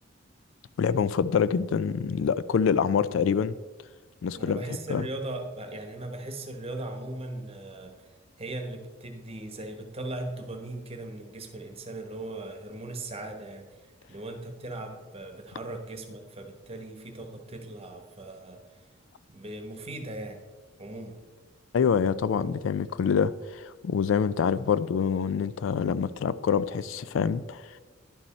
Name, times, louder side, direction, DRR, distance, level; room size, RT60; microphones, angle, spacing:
voice 1, 0.8-3.6 4.2-4.6 4.9-5.0 21.7-27.6, left 6 dB, 75° left, 16 dB, 0.3 m, -26 dB
voice 2, 4.3-8.1 8.4-13.7 14.1-18.6 19.3-20.4 20.8-21.2, right 2 dB, 30° right, 5 dB, 1.1 m, -38 dB
11.0 x 5.4 x 4.2 m, 1.3 s
head